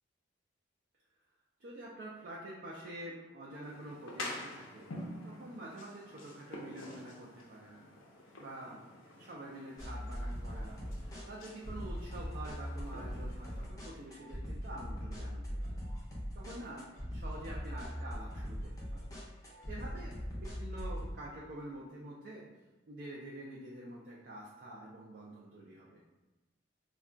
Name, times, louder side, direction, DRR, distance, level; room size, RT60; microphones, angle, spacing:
voice 1, 1.6-4.9 5.2-7.8 8.4-8.8 9.2-10.8 11.1-15.8 16.3-16.8 17.1-19.0 19.4-22.4 22.9-26.0, right 1 dB, 50° right, -4 dB, 0.4 m, -47 dB
sound 1, 3.6-13.7, left 1 dB, 90° left, 0.6 m, -48 dB
sound 2, 9.8-21.1, equal, 15° left, 0.5 m, -41 dB
2.3 x 2.2 x 3.7 m, 1.1 s
head